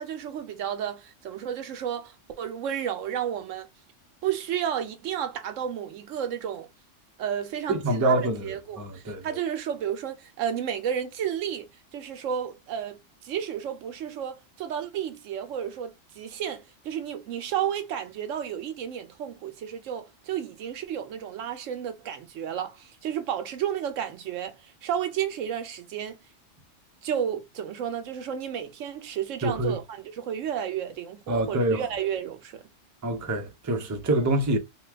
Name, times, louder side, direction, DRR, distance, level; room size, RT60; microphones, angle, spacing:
voice 1, 0.0-3.7 4.2-6.7 7.2-13.0 13.2-26.2 27.0-32.6, right 9 dB, 85° right, 1.0 m, -32 dB
voice 2, 7.7-9.2 29.4-29.8 31.3-31.8 33.0-34.6, right 2 dB, 25° right, 0.4 m, -26 dB
3.0 x 2.2 x 3.3 m
omnidirectional pair, 1.3 m